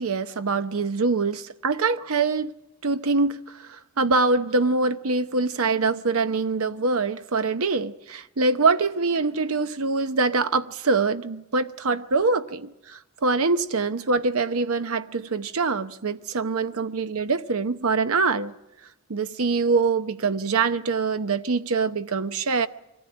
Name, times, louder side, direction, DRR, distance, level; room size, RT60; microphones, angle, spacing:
voice 1, 0.0-2.5 2.8-18.5 19.1-22.7, right 4 dB, 75° right, 0.8 m, -24 dB
23.5 x 15.0 x 9.7 m
head